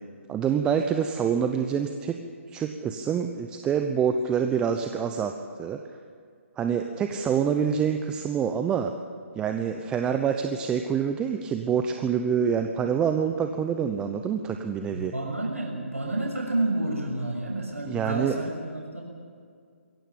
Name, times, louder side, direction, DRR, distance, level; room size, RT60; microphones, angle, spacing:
voice 1, 0.3-2.2 2.5-5.3 5.6-5.8 6.6-8.9 9.4-15.1 17.8-18.3, right 7 dB, 10° right, 6 dB, 0.8 m, -26 dB
voice 2, 14.9-19.0, right 2 dB, 85° right, 0 dB, 6.5 m, -30 dB
22.5 x 17.0 x 8.7 m, 2.1 s
figure-of-eight pair, 140°, 7 cm